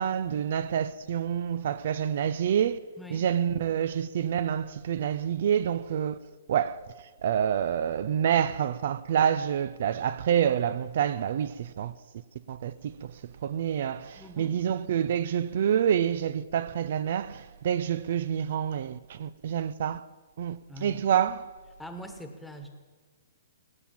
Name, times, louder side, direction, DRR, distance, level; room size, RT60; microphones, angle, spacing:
voice 1, 0.0-2.8 3.1-6.2 6.5-11.9 12.5-20.0 20.4-21.5, right 9 dB, 55° right, 0.5 m, -27 dB
voice 2, 14.2-14.5 20.7-21.0 21.8-22.7, equal, 5° left, 1.4 m, -42 dB
18.5 x 8.6 x 7.3 m
hypercardioid pair, 150°, 0 cm